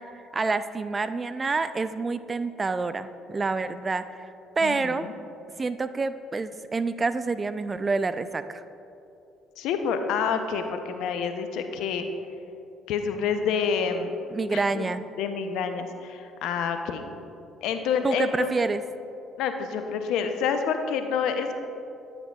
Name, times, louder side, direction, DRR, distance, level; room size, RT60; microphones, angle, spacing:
voice 1, 0.0-4.3 4.6-5.0 5.6-8.6 14.3-15.0 18.0-18.8, right 3 dB, 30° right, 12 dB, 0.3 m, -28 dB
voice 2, 4.6-5.2 9.6-12.0 12.9-14.2 14.5-14.9 15.2-17.0 17.6-18.5 19.4-21.6, left 6 dB, 70° left, 7 dB, 0.6 m, -28 dB
9.8 x 8.8 x 2.3 m, 2.7 s
hypercardioid pair, 55°, 0 cm